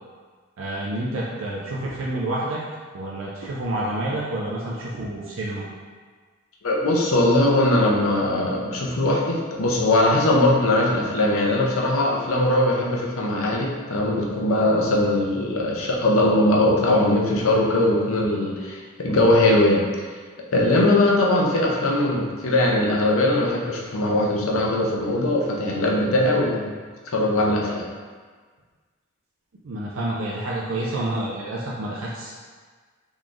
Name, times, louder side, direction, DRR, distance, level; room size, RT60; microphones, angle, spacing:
voice 1, 0.6-2.6 2.9-5.6 29.6-32.3, right 1 dB, 70° right, -5 dB, 0.5 m, -28 dB
voice 2, 6.6-19.8 20.5-26.7 27.1-27.8, left 1 dB, 90° left, -1 dB, 0.6 m, -20 dB
3.9 x 3.0 x 2.5 m, 1.5 s
head